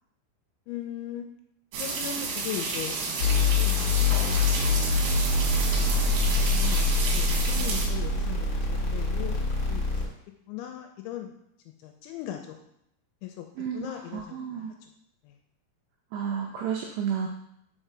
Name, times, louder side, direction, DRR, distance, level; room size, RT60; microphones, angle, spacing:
voice 1, 0.7-1.3 1.8-3.0 3.3-4.3 4.9-6.0 6.5-9.4 9.7-9.8 10.5-11.3 11.8-12.6 13.2-13.5 13.7-14.4, left 11 dB, 85° left, 4 dB, 2.8 m, -39 dB
sound 1, 1.7-7.9, right 4 dB, 65° right, 2.4 m, -31 dB
sound 2, 3.2-10.0, left 3 dB, 65° left, 1.2 m, -25 dB
sound 3, 3.7-6.5 7.8-8.2, equal, 15° right, 2.0 m, -43 dB
voice 2, 13.6-14.7 16.1-17.3, right 7 dB, 90° right, 1 dB, 2.3 m, -32 dB
5.6 x 5.4 x 6.1 m, 0.75 s
omnidirectional pair, 5.7 m